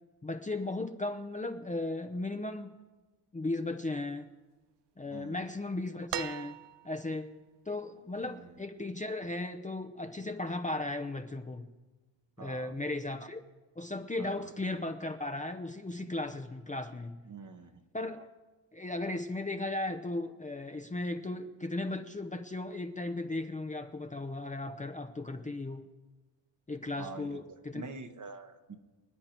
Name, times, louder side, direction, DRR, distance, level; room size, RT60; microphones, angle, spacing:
voice 1, 0.2-2.7 3.3-4.3 5.0-6.6 6.8-7.3 7.7-11.7 12.4-13.4 13.8-17.2 17.9-18.3 18.7-25.9 26.7-27.8, left 2 dB, 15° left, 6 dB, 0.7 m, -36 dB
voice 2, 5.1-5.4 8.2-8.6 12.4-12.8 14.2-14.5 17.3-17.8 27.0-28.8, right 4 dB, 40° right, 8 dB, 1.3 m, -46 dB
sound 1, 6.1-7.1 8.6-8.7, right 12 dB, 60° right, 0.5 m, -39 dB
25.5 x 9.6 x 4.5 m, 1.3 s
cardioid pair, 90°, 47 cm